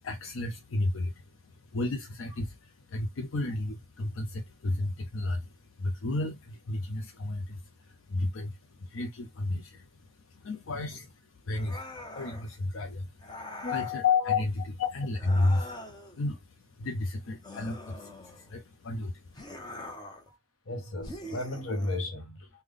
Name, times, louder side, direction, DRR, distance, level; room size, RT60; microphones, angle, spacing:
voice 1, 0.0-19.9, left 2 dB, 75° left, 0.5 m, -33 dB
sound 1, 11.6-12.5 13.2-14.0 15.1-16.2 17.4-18.6 19.3-20.3 21.0-22.0, left 1 dB, 20° left, 0.7 m, -43 dB
voice 2, 13.6-14.0 14.8-14.9 20.1-20.4 20.7-22.5, left 4 dB, 90° left, 0.9 m, -34 dB
3.3 x 2.2 x 3.6 m
head